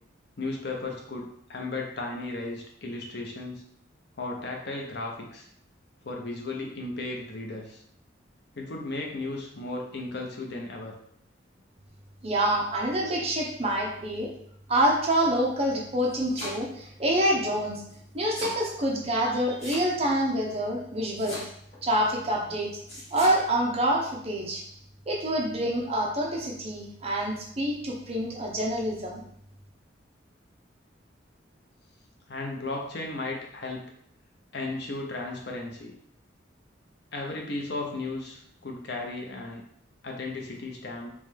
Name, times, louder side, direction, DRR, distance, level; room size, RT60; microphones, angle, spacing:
voice 1, 0.4-3.6 4.2-5.5 6.0-7.8 8.6-11.0 32.3-33.9 34.5-35.9 37.1-39.6 40.0-41.1, left 2 dB, 60° left, 1 dB, 0.7 m, -35 dB
voice 2, 12.2-14.3 14.7-17.8 18.1-21.4 21.8-22.7 23.1-24.6 25.1-29.2, right 1 dB, 35° right, 0 dB, 0.7 m, -26 dB
Domestic sounds home sounds, 16.0-16.9 17.9-18.6 19.6-20.2 21.2-21.8 22.9-23.4, left 1 dB, 30° left, 1.6 m, -38 dB
3.2 x 3.1 x 3.5 m, 0.69 s
head